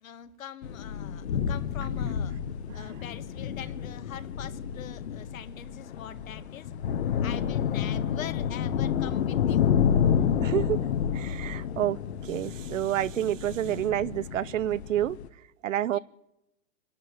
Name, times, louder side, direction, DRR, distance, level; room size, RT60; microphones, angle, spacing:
voice 1, 0.0-2.3 2.7-6.7 7.2-9.7 15.9-16.0, left 10 dB, 75° left, 1.8 m, -43 dB
sound 1, 0.6-15.3, left 8 dB, 50° left, 1.3 m, -29 dB
voice 2, 10.4-10.8 11.2-12.0 12.3-15.2 15.6-16.0, right 12 dB, 70° right, 0.8 m, -28 dB
25.5 x 12.0 x 9.5 m
hypercardioid pair, 170°, 41 cm